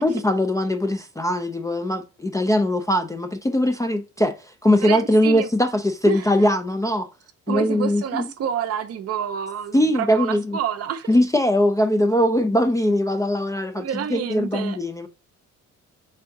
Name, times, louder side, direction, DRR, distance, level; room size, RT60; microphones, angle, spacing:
voice 1, 0.0-4.4 4.6-7.1 7.5-8.2 9.7-10.6 11.1-15.1, left 1 dB, 10° left, 0.3 m, -21 dB
voice 2, 4.8-5.5 6.0-6.2 7.5-11.1 13.7-14.8, right 9 dB, 55° right, 0.5 m, -28 dB
3.6 x 3.4 x 2.6 m
cardioid pair, 90°, 30 cm